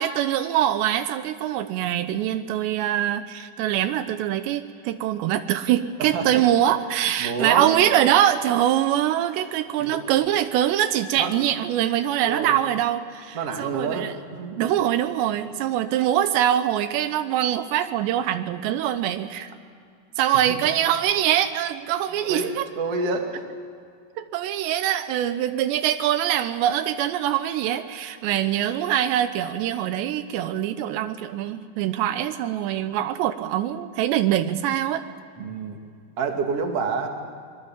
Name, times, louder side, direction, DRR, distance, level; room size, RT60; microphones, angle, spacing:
voice 1, 0.0-14.1 14.6-19.5 20.2-22.7 24.2-35.0, right 11 dB, 85° right, 10 dB, 3.0 m, -23 dB
voice 2, 7.2-7.8 9.8-10.0 11.2-11.3 12.2-12.6 13.3-14.7 20.5-20.6 22.2-23.4 35.4-35.8 36.2-37.1, right 4 dB, 40° right, 3 dB, 2.6 m, -28 dB
24.5 x 21.0 x 7.3 m, 2.3 s
omnidirectional pair, 5.0 m